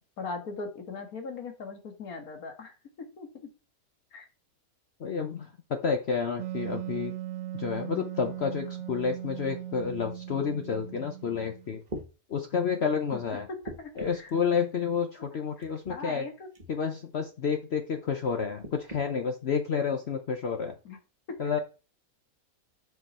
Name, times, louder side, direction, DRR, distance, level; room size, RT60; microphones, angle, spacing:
voice 1, 0.2-3.3 4.1-4.3 13.1-13.2 13.8-14.3 15.6-16.5 20.9-21.0 21.3-21.4, left 4 dB, 75° left, 4 dB, 2.1 m, -40 dB
voice 2, 5.0-7.1 7.5-11.8 12.3-13.5 14.0-16.3 16.7-20.7 21.4-21.6, left 6 dB, 50° left, 5 dB, 1.0 m, -30 dB
Wind instrument woodwind instrument, 6.4-11.8, right 12 dB, 65° right, 0.8 m, -38 dB
sound 1, 11.3-11.4 11.9-12.1 13.6-14.3 15.6-16.0 16.5-16.7 18.6-19.1 19.9-20.0, right 1 dB, 30° right, 1.4 m, -41 dB
7.7 x 5.8 x 4.3 m, 0.32 s
omnidirectional pair, 1.6 m